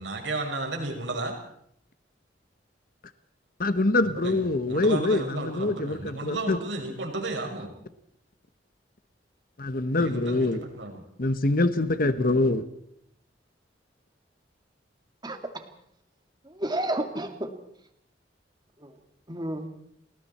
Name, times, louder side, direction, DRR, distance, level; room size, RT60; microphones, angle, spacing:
voice 1, 0.0-1.4 4.0-7.7 10.0-11.0, right 2 dB, 75° right, 5.9 m, -33 dB
voice 2, 3.6-6.6 9.6-10.6 11.2-12.6, left 2 dB, 50° left, 1.2 m, -24 dB
voice 3, 15.2-15.7 16.4-17.5 18.8-18.9 19.3-19.7, right 1 dB, 25° right, 2.4 m, -31 dB
30.0 x 20.5 x 4.4 m
head